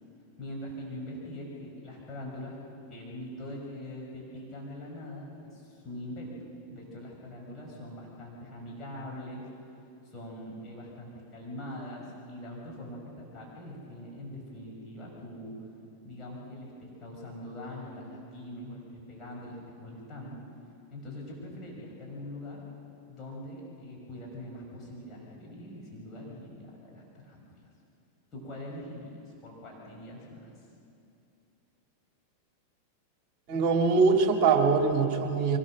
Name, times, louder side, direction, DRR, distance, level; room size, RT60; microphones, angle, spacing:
voice 1, 0.4-2.6 2.9-6.3 6.7-9.5 10.0-15.5 16.0-20.4 20.9-22.6 23.1-27.4 28.3-30.5, left 1 dB, 25° left, -4 dB, 5.8 m, -42 dB
voice 2, 33.5-35.6, right 4 dB, 35° right, 2 dB, 2.6 m, -23 dB
24.0 x 19.5 x 6.5 m, 2.6 s
figure-of-eight pair, 90°, 0 cm